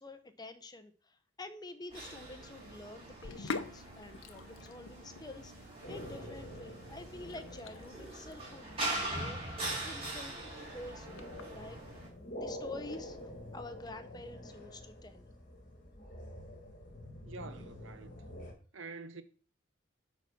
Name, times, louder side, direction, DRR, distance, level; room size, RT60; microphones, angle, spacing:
voice 1, 0.0-9.4 9.7-11.8 12.3-15.2, left 2 dB, 20° left, 0.7 m, -48 dB
sound 1, 1.9-12.1, right 1 dB, 30° right, 3.2 m, -42 dB
Sink (filling or washing), 3.1-13.9, left 4 dB, 85° left, 0.7 m, -48 dB
sound 2, 5.8-18.5, left 1 dB, 40° left, 1.9 m, -48 dB
voice 2, 17.2-18.3 18.7-19.2, right 3 dB, 70° right, 0.9 m, -47 dB
8.8 x 4.2 x 5.7 m
head